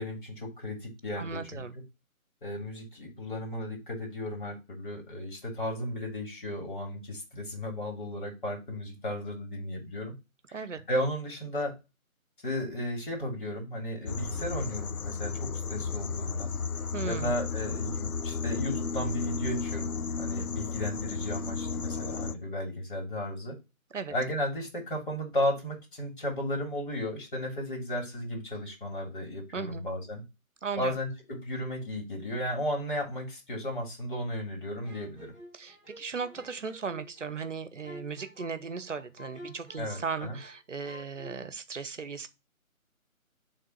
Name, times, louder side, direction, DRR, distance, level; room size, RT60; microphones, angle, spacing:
voice 1, 0.0-1.6 2.4-10.1 10.5-10.6 10.9-11.7 12.4-16.5 17.1-23.5 24.1-30.2 30.8-35.3 39.8-40.4, left 1 dB, 35° left, 3.2 m, -34 dB
voice 2, 1.1-1.8 10.5-10.8 16.9-17.3 23.9-24.1 29.5-29.8 30.6-30.9 35.5-42.3, right 5 dB, 55° right, 1.0 m, -37 dB
sound 1, 14.1-22.3, left 5 dB, 85° left, 0.8 m, -34 dB
sound 2, 34.8-40.6 40.8-41.5, left 1 dB, 5° right, 2.1 m, -50 dB
6.8 x 3.6 x 4.6 m
figure-of-eight pair, 155°, 43 cm